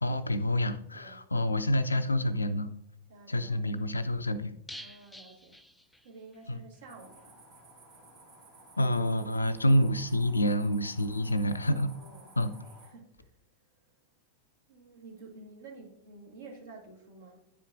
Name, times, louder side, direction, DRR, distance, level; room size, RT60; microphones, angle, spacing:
voice 1, 0.0-2.7 3.3-4.5 6.5-6.6 8.8-11.9 12.4-12.5, left 1 dB, 80° left, 12 dB, 0.4 m, -27 dB
voice 2, 0.9-1.2 3.1-3.7 4.7-5.5 6.0-7.4 11.3-11.6 11.9-12.3 12.6-13.4 14.7-17.4, right 3 dB, 60° right, -1 dB, 1.6 m, -51 dB
sound 1, 4.7-6.5 6.7-6.8 7.2-7.3, equal, 5° left, 0.3 m, -49 dB
sound 2, 6.9-12.9, right 1 dB, 45° right, 1.5 m, -55 dB
10.0 x 4.5 x 2.5 m, 0.78 s
figure-of-eight pair, 90°, 0 cm